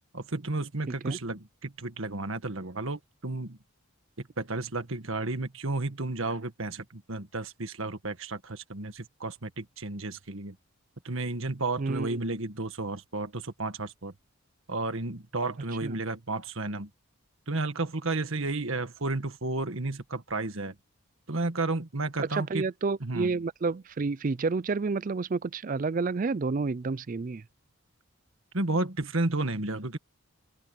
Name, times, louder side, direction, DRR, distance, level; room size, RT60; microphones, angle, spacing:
voice 1, 0.1-3.6 4.4-10.5 11.0-14.1 14.7-16.9 17.5-20.7 21.3-22.6 23.0-23.4 28.5-30.0, right 2 dB, 65° right, 1.6 m, -32 dB
voice 2, 0.9-1.2 11.8-12.2 15.8-16.0 22.2-27.4, right 4 dB, 35° right, 0.4 m, -30 dB
open air
head